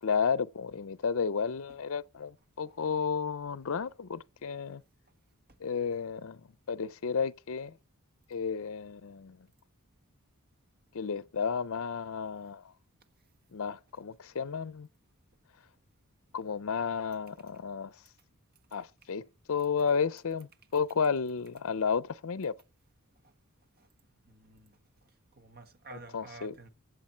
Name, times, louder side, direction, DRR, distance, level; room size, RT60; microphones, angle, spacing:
voice 1, 0.0-4.8 5.6-6.4 6.7-7.8 8.3-9.4 10.9-12.7 13.5-14.9 16.3-18.0 18.7-22.5 26.1-26.5, left 6 dB, 65° left, 0.5 m, -32 dB
voice 2, 2.7-3.0 5.9-6.1 23.2-23.3 23.8-23.9 24.3-24.8 25.3-26.7, right 3 dB, 45° right, 1.6 m, -51 dB
23.0 x 7.8 x 4.4 m
head